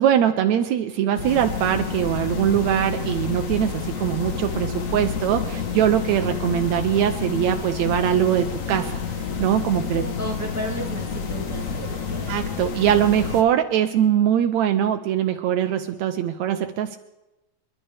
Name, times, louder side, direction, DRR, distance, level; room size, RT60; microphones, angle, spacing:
voice 1, 0.0-9.0 9.4-10.0 12.3-17.0, right 10 dB, 80° right, 7 dB, 2.0 m, -22 dB
sound 1, 1.1-13.4, left 6 dB, 80° left, 0.7 m, -29 dB
voice 2, 9.9-12.4, right 1 dB, 5° right, -1 dB, 1.8 m, -33 dB
27.5 x 11.5 x 3.4 m, 0.99 s
omnidirectional pair, 3.3 m